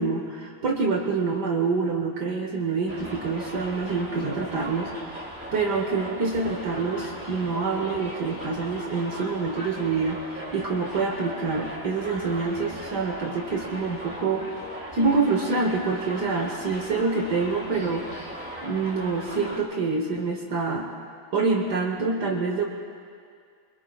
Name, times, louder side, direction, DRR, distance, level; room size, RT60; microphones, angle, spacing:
voice 1, 0.0-5.2 5.5-14.5 14.9-18.3 18.6-20.9 21.3-22.7, right 4 dB, 60° right, 1 dB, 1.7 m, -26 dB
Subway metro underground, 2.9-19.6, equal, 5° right, 2.6 m, -38 dB
25.5 x 22.5 x 2.4 m, 2.2 s
omnidirectional pair, 2.1 m